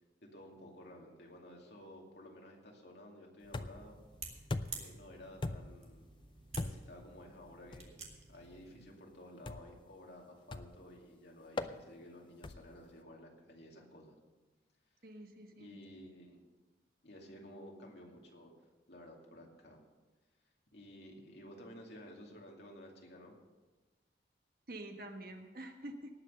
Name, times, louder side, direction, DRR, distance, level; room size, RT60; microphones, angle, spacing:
voice 1, 0.3-3.9 4.7-6.1 6.6-7.9 8.3-14.2 15.6-16.4 17.0-18.5 18.9-19.8 20.7-23.4, left 1 dB, 65° left, 0 dB, 2.5 m, -53 dB
sound 1, 3.4-8.8, right 4 dB, 35° right, 1.9 m, -51 dB
sound 2, 3.5-4.0 4.5-5.0 5.4-5.9 6.6-7.0 7.7-7.9 9.5-9.8 10.5-10.9 11.6-11.8 12.4-12.8, left 2 dB, 25° left, 0.4 m, -40 dB
voice 2, 15.0-15.8 24.7-26.1, right 1 dB, 50° right, 5 dB, 1.3 m, -47 dB
18.5 x 6.3 x 6.7 m, 1.2 s
head